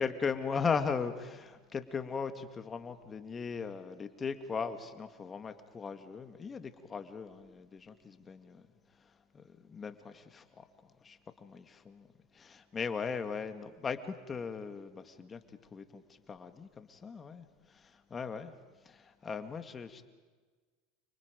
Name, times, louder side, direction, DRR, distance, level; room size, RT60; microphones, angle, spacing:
voice 1, 0.0-8.6 9.3-10.7 11.0-12.1 12.3-15.4 15.7-16.0 16.3-18.5 18.8-20.1, left 5 dB, 25° left, 8 dB, 2.1 m, -38 dB
29.5 x 29.5 x 5.3 m, 1.4 s
hypercardioid pair, 95°, 0 cm